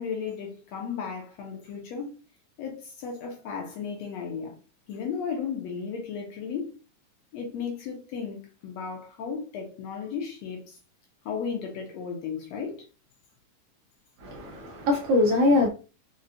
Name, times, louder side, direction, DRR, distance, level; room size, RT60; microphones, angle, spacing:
voice 1, 0.0-2.1 2.6-4.6 4.9-6.8 7.3-10.8 11.3-12.9, left 6 dB, 70° left, 1.8 m, -35 dB
voice 2, 14.2-15.7, left 2 dB, 80° right, 1.4 m, -22 dB
5.1 x 2.3 x 2.7 m
omnidirectional pair, 3.5 m